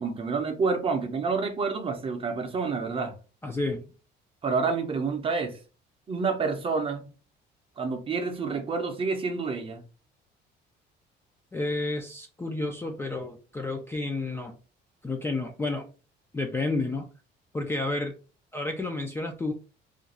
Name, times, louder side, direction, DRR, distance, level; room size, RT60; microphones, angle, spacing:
voice 1, 0.0-3.1 4.4-5.6 6.1-7.1 7.8-9.8, right 4 dB, 30° right, 0.6 m, -28 dB
voice 2, 3.4-3.8 11.5-14.5 15.0-15.9 16.3-17.1 17.5-18.1 18.5-19.5, left 2 dB, 10° left, 0.3 m, -30 dB
2.5 x 2.3 x 4.0 m
cardioid pair, 135°, 19 cm